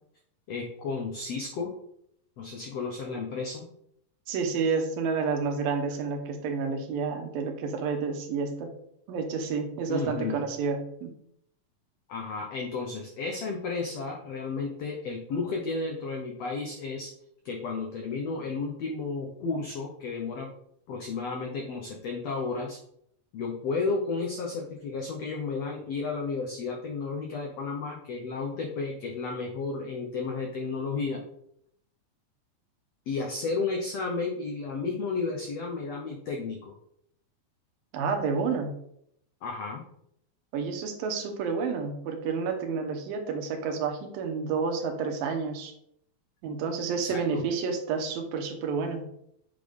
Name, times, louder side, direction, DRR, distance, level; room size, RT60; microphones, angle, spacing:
voice 1, 0.5-1.7 2.4-3.6 9.9-10.5 12.1-17.1 17.4-20.5 20.9-22.8 23.3-31.2 33.1-36.7 39.4-39.8 47.0-47.4, left 4 dB, 80° left, 1 dB, 1.5 m, -32 dB
voice 2, 4.3-8.7 9.1-11.1 37.9-38.7 40.5-45.7 46.4-49.0, right 5 dB, 75° right, 4 dB, 2.8 m, -30 dB
8.2 x 4.1 x 5.2 m, 0.73 s
omnidirectional pair, 4.2 m